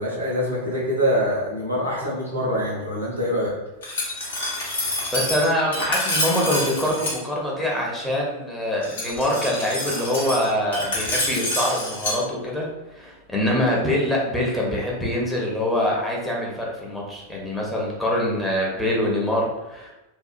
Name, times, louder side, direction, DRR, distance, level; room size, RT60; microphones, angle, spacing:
voice 1, 0.0-3.5, equal, 85° right, -5 dB, 0.9 m, -24 dB
Glass, 3.8-7.2 8.8-12.2, left 1 dB, 65° left, 0.8 m, -27 dB
voice 2, 5.1-19.9, left 1 dB, 5° left, -4 dB, 0.7 m, -24 dB
2.7 x 2.2 x 2.4 m, 1.0 s
figure-of-eight pair, 90°, 0 cm